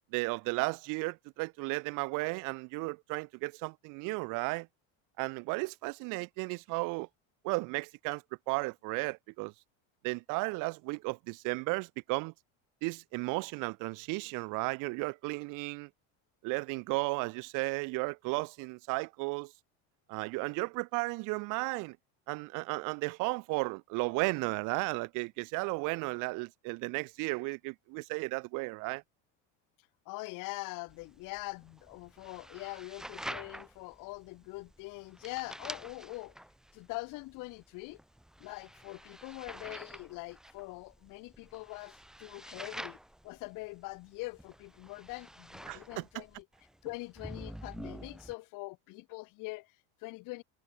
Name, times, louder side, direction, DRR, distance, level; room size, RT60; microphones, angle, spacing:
voice 1, 0.1-4.7 5.2-7.1 7.4-9.5 10.0-12.3 12.8-15.9 16.4-19.5 20.1-22.0 22.3-29.0 45.7-46.2, right 27 dB, 60° right, 1.0 m, -34 dB
voice 2, 30.0-36.4 36.7-38.0 38.4-43.0 43.2-46.4 46.8-50.4, left 24 dB, 60° left, 3.1 m, -43 dB
sound 1, 30.9-48.3, equal, ahead, 3.5 m, -48 dB
cardioid pair, 145°, 35 cm